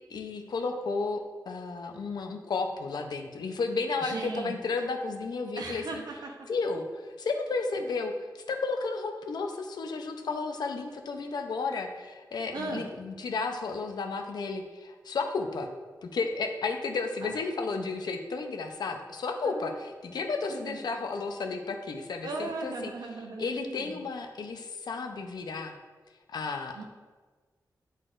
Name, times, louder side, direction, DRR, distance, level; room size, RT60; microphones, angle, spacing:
voice 1, 0.1-6.0 6.5-15.7 16.0-22.9 23.4-25.7 26.3-26.8, left 4 dB, 80° left, 5 dB, 0.6 m, -33 dB
voice 2, 4.0-4.5 5.6-6.5 12.5-12.8 17.2-17.3 19.4-19.8 20.5-20.8 22.2-24.0 26.7-26.8, right 3 dB, 80° right, 2 dB, 0.9 m, -37 dB
10.5 x 4.0 x 2.5 m, 1.4 s
wide cardioid pair, 145°, 7 cm